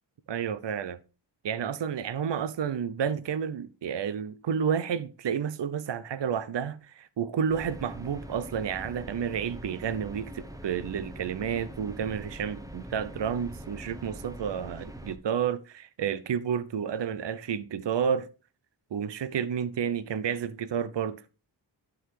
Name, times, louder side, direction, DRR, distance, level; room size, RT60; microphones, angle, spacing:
voice 1, 0.3-1.0 1.4-18.3 18.9-21.2, right 7 dB, 65° right, 0.7 m, -30 dB
sound 1, 7.5-15.2, right 1 dB, 5° right, 1.0 m, -43 dB
11.0 x 4.0 x 4.7 m
wide cardioid pair, 65°, 47 cm